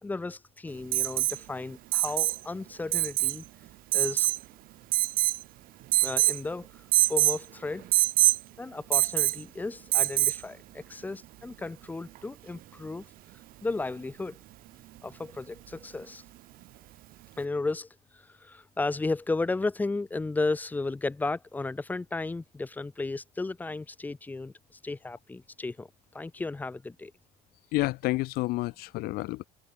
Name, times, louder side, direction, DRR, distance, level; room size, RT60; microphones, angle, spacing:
voice 1, 0.0-3.5 3.9-4.3 6.0-7.9 8.6-13.1 13.6-14.4 15.0-16.2 17.4-27.1, left 3 dB, 10° left, 5.3 m, -34 dB
Alarm, 0.9-1.4 1.9-2.4 2.9-3.4 3.9-4.4 4.9-5.4 5.9-6.4 6.9-7.4 7.9-8.4 8.9-9.4 9.9-10.4 12.1-12.2, right 17 dB, 60° right, 4.6 m, -24 dB
voice 2, 27.7-29.4, left 20 dB, 65° left, 2.2 m, -29 dB
cardioid pair, 175°, 17 cm